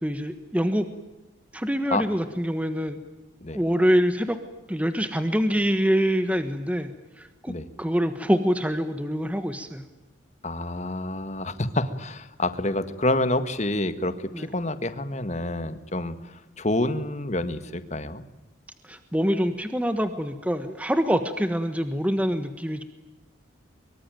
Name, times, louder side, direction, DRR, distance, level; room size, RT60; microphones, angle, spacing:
voice 1, 0.0-0.9 1.5-3.0 3.5-4.4 4.7-6.9 7.2-7.5 7.8-9.8 14.3-14.5 18.9-22.8, equal, 5° right, 9 dB, 1.4 m, -25 dB
voice 2, 10.4-18.2, left 1 dB, 35° left, 11 dB, 1.7 m, -28 dB
24.5 x 23.5 x 9.3 m, 1.0 s
head